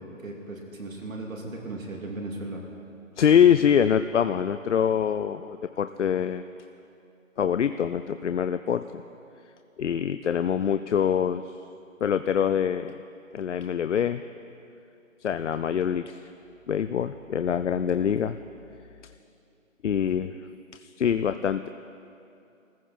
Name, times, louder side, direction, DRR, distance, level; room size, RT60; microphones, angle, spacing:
voice 1, 0.0-2.6, right 2 dB, 75° right, 0 dB, 2.8 m, -37 dB
voice 2, 3.2-6.4 7.4-9.0 9.8-11.5 12.0-13.0 13.3-14.2 15.2-16.2 16.7-18.4 19.8-20.3 20.7-21.7, left 8 dB, 60° left, 11 dB, 0.5 m, -24 dB
21.0 x 15.0 x 4.3 m, 2.7 s
hypercardioid pair, 175°, 40 cm